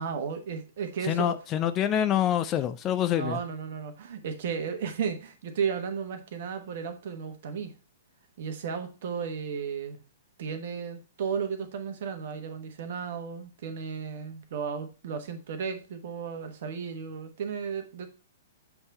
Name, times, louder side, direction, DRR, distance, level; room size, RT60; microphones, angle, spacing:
voice 1, 0.0-1.3 3.2-7.7 8.4-10.0 10.4-18.1, right 6 dB, 55° right, 7 dB, 1.1 m, -34 dB
voice 2, 1.1-3.4, left 10 dB, 25° left, 10 dB, 0.5 m, -26 dB
6.9 x 3.5 x 4.1 m, 0.34 s
figure-of-eight pair, 115°, 0 cm